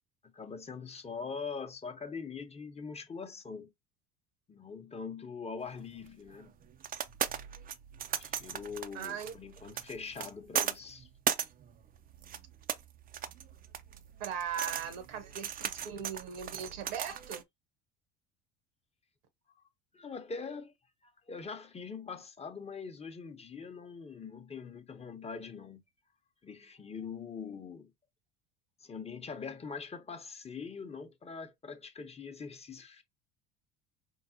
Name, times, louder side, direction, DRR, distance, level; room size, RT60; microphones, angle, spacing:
voice 1, 0.3-3.7 4.5-6.5 8.1-11.1 19.5-19.6 19.9-20.7 21.0-25.8 26.4-27.9 28.8-33.0, left 5 dB, 20° left, 0.7 m, -43 dB
sound 1, 5.7-17.4, right 9 dB, 30° right, 0.4 m, -38 dB
voice 2, 8.9-9.3 14.2-17.4, right 7 dB, 70° right, 1.0 m, -39 dB
4.6 x 2.0 x 2.7 m
hypercardioid pair, 70°, 32 cm